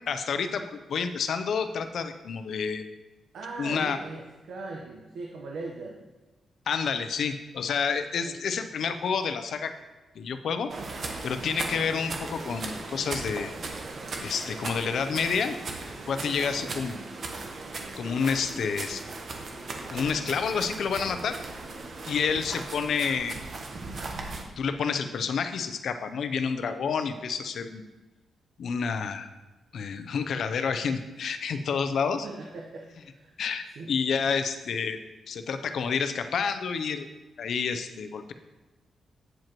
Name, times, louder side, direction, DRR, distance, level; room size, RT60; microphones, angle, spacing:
voice 1, 0.1-0.6 0.9-3.0 3.6-4.0 6.7-9.7 10.2-10.7 11.2-13.5 14.2-15.6 16.1-17.0 18.0-19.0 19.9-21.4 22.1-23.4 24.6-27.8 28.6-29.3 29.7-32.3 33.4-35.0 35.3-37.1 37.4-38.3, left 6 dB, 65° left, 9 dB, 0.6 m, -29 dB
voice 2, 3.3-6.0 8.2-8.4 16.6-16.9 22.3-22.4 32.2-33.3 33.7-33.9, right 3 dB, 70° right, 0 dB, 0.9 m, -40 dB
sound 1, 10.7-24.4, right 3 dB, 45° right, 1.0 m, -37 dB
8.9 x 7.7 x 3.0 m, 1.2 s
wide cardioid pair, 145°, 0 cm